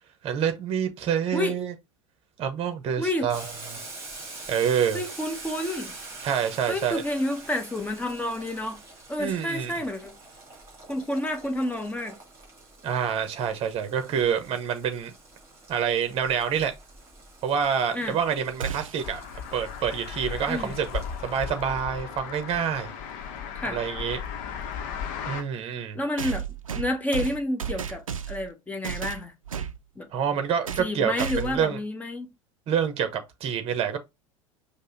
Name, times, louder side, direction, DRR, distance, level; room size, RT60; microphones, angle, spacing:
voice 1, 0.2-1.7 2.4-3.8 4.5-5.0 6.2-7.0 9.2-9.7 12.8-15.1 15.7-16.7 17.4-19.2 19.5-22.9 23.7-24.2 25.2-26.0 30.1-31.8 32.7-34.0, right 8 dB, 35° right, 0.9 m, -27 dB
voice 2, 3.0-3.3 4.9-5.9 6.7-8.8 9.1-10.1 10.9-12.1 17.9-18.2 20.5-20.7 23.5-23.8 25.9-26.4 26.7-29.3 30.0-30.1 30.8-32.3, left 1 dB, 10° left, 1.1 m, -29 dB
Boiling, 3.3-21.7, right 3 dB, 15° right, 2.5 m, -45 dB
sound 1, 18.6-19.2 21.3-21.4 22.5-22.6 26.2-28.5 28.8-29.8 30.7-30.9 31.2-31.7, right 7 dB, 85° right, 0.4 m, -33 dB
sound 2, 19.0-25.4, left 7 dB, 50° left, 0.9 m, -36 dB
5.3 x 2.2 x 3.9 m
figure-of-eight pair, 80°, 17 cm